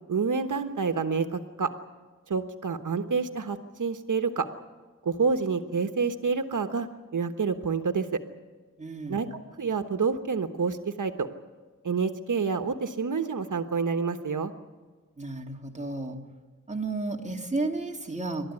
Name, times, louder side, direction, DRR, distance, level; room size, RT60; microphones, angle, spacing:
voice 1, 0.1-1.7 2.3-4.5 5.0-6.9 7.1-8.2 9.1-11.3 11.8-14.5, right 5 dB, 80° right, 7 dB, 1.2 m, -28 dB
voice 2, 8.8-9.3 15.2-16.2 16.7-18.5, right 3 dB, 25° right, 1 dB, 2.6 m, -32 dB
28.5 x 13.0 x 9.8 m, 1.4 s
wide cardioid pair, 95°, 31 cm